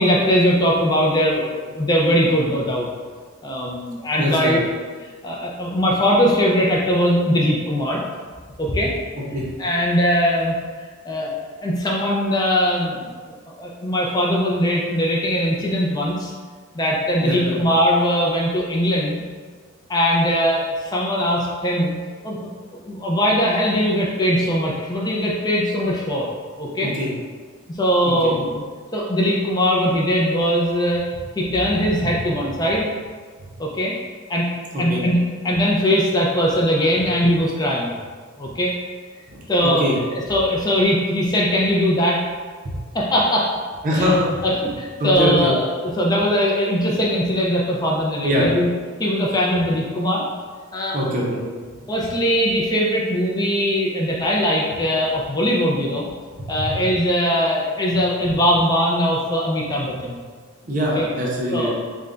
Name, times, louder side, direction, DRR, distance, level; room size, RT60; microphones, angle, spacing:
voice 1, 0.0-2.9 3.4-4.6 5.0-8.0 8.6-8.9 9.6-10.6 11.1-16.3 16.7-19.2 19.9-22.0 22.2-22.5 22.8-26.3 26.6-26.9 27.7-28.6 28.9-31.0 31.3-32.9 33.6-34.0 34.3-34.5 34.8-35.2 35.4-38.0 38.4-38.7 39.5-42.2 42.9-43.5 43.9-44.2 44.4-48.7 49.0-50.2 50.7-51.0 51.9-56.1 56.5-60.2 61.0-61.1 61.5-61.7, equal, 20° left, -3 dB, 0.4 m, -20 dB
voice 2, 4.2-4.6 9.3-9.5 17.2-17.6 26.8-27.1 28.0-28.3 31.9-32.0 34.7-35.0 39.3-40.0 42.6-42.8 43.8-44.4 45.0-45.5 48.2-48.5 50.9-51.4 56.4-56.8 58.2-58.3 60.6-61.7, equal, 35° right, -4 dB, 0.6 m, -23 dB
3.5 x 2.2 x 3.8 m, 1.6 s
head